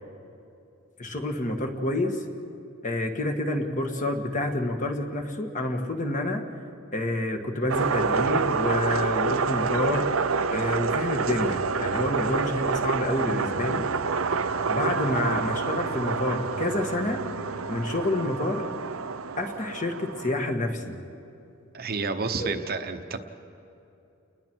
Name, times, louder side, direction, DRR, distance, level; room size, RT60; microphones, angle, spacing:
voice 1, 1.0-2.2 2.8-6.5 6.9-10.1 10.5-13.9 14.7-17.3 17.7-18.7 19.4-21.0 22.4-22.5, left 1 dB, 40° left, 4 dB, 1.7 m, -28 dB
sound 1, 7.7-20.5, right 5 dB, 75° right, 0.7 m, -28 dB
voice 2, 21.7-23.3, right 4 dB, 45° right, 7 dB, 1.0 m, -30 dB
30.0 x 20.0 x 4.6 m, 2.8 s
head